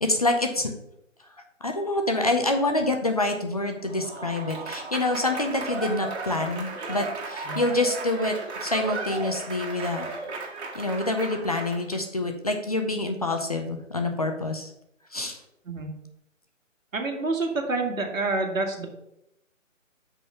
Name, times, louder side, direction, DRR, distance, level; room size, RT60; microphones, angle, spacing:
voice 1, 0.0-0.7 1.6-8.4 8.6-10.1 10.7-14.7 15.1-15.4, left 2 dB, 30° left, 4 dB, 0.5 m, -26 dB
Applause / Crowd, 3.8-12.0, right 3 dB, 55° right, 1.9 m, -35 dB
voice 2, 16.9-18.9, right 3 dB, 80° right, 3 dB, 1.9 m, -28 dB
5.5 x 5.4 x 5.5 m, 0.81 s
figure-of-eight pair, 160°, 39 cm